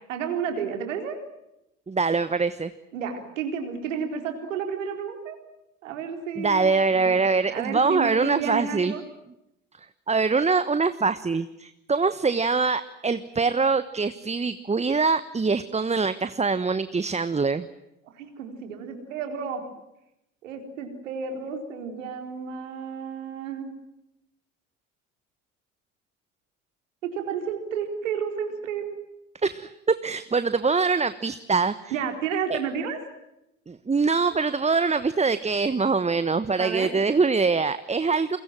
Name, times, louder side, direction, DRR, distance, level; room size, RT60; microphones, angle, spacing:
voice 1, 0.1-1.2 2.9-5.4 5.8-7.2 7.5-9.0 18.2-19.6 20.4-23.7 27.1-28.9 31.9-33.0 36.6-36.9, right 7 dB, 80° right, 5 dB, 4.2 m, -31 dB
voice 2, 1.9-2.7 6.4-8.9 10.1-17.7 29.4-32.0 32.5-32.6 33.7-38.4, right 4 dB, 15° right, 13 dB, 1.2 m, -24 dB
29.0 x 23.0 x 7.6 m, 0.85 s
hypercardioid pair, 60°, 38 cm